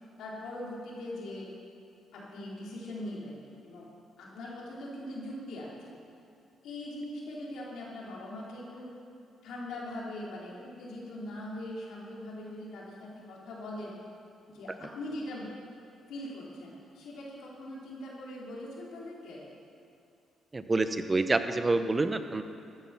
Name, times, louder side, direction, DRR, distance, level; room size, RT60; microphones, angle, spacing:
voice 1, 0.2-1.5 2.1-3.4 3.6-3.9 4.2-5.9 6.6-8.9 9.4-13.9 14.5-15.5 16.1-19.4, left 1 dB, 80° left, -4 dB, 3.8 m, -41 dB
voice 2, 20.5-22.4, right 3 dB, 25° right, 9 dB, 0.9 m, -27 dB
14.0 x 11.5 x 6.0 m, 2.7 s
cardioid pair, 75°, 0 cm